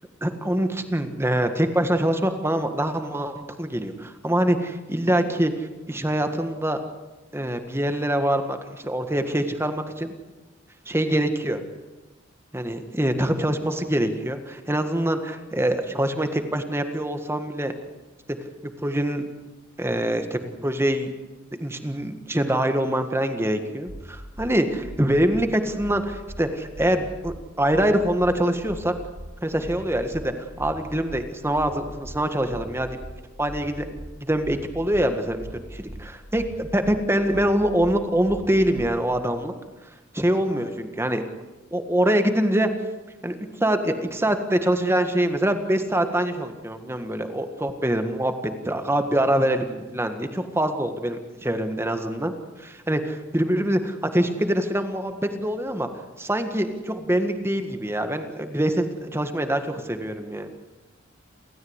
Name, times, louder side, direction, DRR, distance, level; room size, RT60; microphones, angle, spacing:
voice 1, 0.2-6.8 7.3-10.1 10.8-11.6 12.5-17.7 18.6-19.2 19.8-21.1 21.6-28.9 29.4-33.0 33.4-39.5 40.1-41.2 41.7-42.7 43.2-48.3 48.6-55.9 56.2-60.5, right 1 dB, 15° right, 7 dB, 1.7 m, -24 dB
sound 1, 23.9-24.0 24.3-24.5 24.8-25.0 25.3-25.5 25.8-25.9 26.3-26.4 26.7-26.9 27.2-27.4 27.7-27.9 28.2-28.3 28.7-28.8 29.1-29.3 29.6-29.8 30.1-30.3 30.6-30.7 31.1-31.2 31.5-31.7 32.0-32.2 32.5-32.7 33.0-33.1 33.5-33.6 33.9-34.1 34.4-34.6 34.9-35.1 35.4-35.5 35.9-36.0 36.3-36.5 36.8-37.0 37.3-37.5 37.8-37.9 38.3-38.4 38.7-38.9, equal, 60° right, 2.5 m, -38 dB
30.0 x 13.5 x 8.1 m, 1.1 s
head